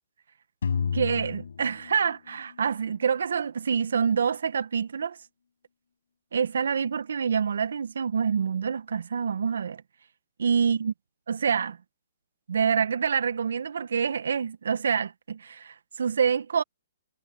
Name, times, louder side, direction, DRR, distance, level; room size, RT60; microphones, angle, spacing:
sound 1, 0.6-2.8, left 6 dB, 75° left, 6.9 m, -31 dB
voice 1, 0.9-5.2 6.3-9.8 10.4-10.9 11.3-11.8 12.5-16.6, right 6 dB, 75° right, 1.3 m, -26 dB
hypercardioid pair, 135°, 0 cm